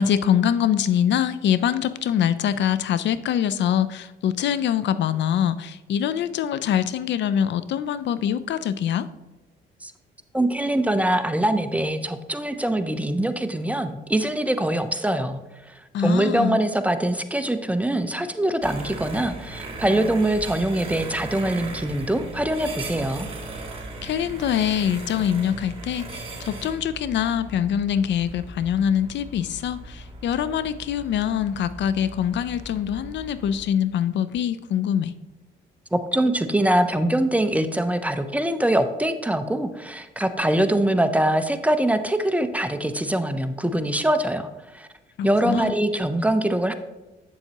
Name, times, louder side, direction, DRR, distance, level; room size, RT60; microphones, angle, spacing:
voice 1, 0.0-9.1 15.9-16.6 24.0-35.1 45.2-45.7, left 9 dB, 65° left, 14 dB, 0.4 m, -24 dB
voice 2, 10.3-15.4 16.0-23.3 35.9-44.5 44.7-44.9 45.2-46.7, right 1 dB, 5° right, 9 dB, 0.5 m, -23 dB
sound 1, 18.6-33.7, right 2 dB, 25° right, 1.7 m, -38 dB
7.9 x 7.1 x 2.9 m, 1.1 s
cardioid pair, 90°, 20 cm